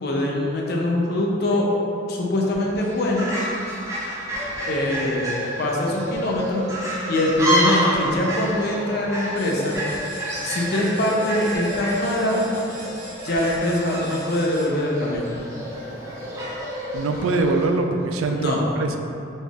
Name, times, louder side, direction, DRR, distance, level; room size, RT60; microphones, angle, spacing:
voice 1, 0.0-1.7 2.1-3.3 4.7-6.6 6.9-9.8 10.4-12.4 13.2-15.3 18.3-18.6, left 1 dB, 55° left, -2 dB, 0.5 m, -23 dB
sound 1, 2.7-2.8 4.1-5.6 6.1-6.4 7.9-10.0 11.5-13.6 15.1-17.2, equal, 90° left, 0.8 m, -43 dB
Fowl, 2.8-17.7, equal, 15° right, 0.6 m, -29 dB
sound 2, 9.4-14.9, right 1 dB, 50° right, 1.2 m, -41 dB
voice 2, 16.9-19.0, right 3 dB, 85° right, 4 dB, 0.3 m, -23 dB
4.1 x 3.4 x 2.4 m, 2.7 s
head